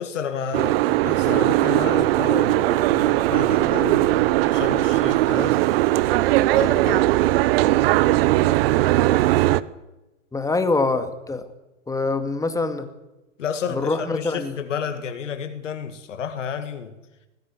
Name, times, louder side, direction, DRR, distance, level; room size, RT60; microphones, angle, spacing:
voice 1, 0.0-5.6 6.4-7.1 13.4-17.0, left 7 dB, 75° left, 2.3 m, -31 dB
Boat Water vehicle, 0.5-9.6, right 17 dB, 50° right, 1.0 m, -19 dB
voice 2, 10.3-11.5 11.9-12.9 13.7-14.5, left 3 dB, 10° left, 2.4 m, -24 dB
20.0 x 15.5 x 9.9 m
hypercardioid pair, 105°, 37 cm